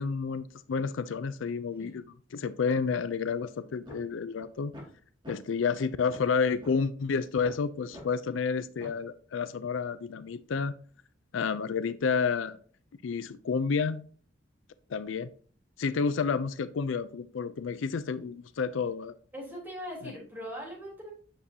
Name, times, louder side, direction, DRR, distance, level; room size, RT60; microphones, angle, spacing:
voice 1, 0.0-2.0 2.3-4.7 5.3-10.7 11.3-12.6 13.0-14.0 14.9-15.3 15.8-19.1 20.0-20.1, left 5 dB, 85° left, 0.4 m, -30 dB
sound 1, 3.8-4.0 4.4-4.5 4.7-4.9 5.2-5.4 5.8-5.9 6.1-6.3 6.6-6.7 7.1-7.5 7.9-8.0 8.4-8.5 8.8-9.0, equal, 25° right, 2.3 m, -45 dB
voice 2, 19.3-21.1, equal, 10° right, 3.7 m, -40 dB
8.0 x 6.2 x 2.8 m
head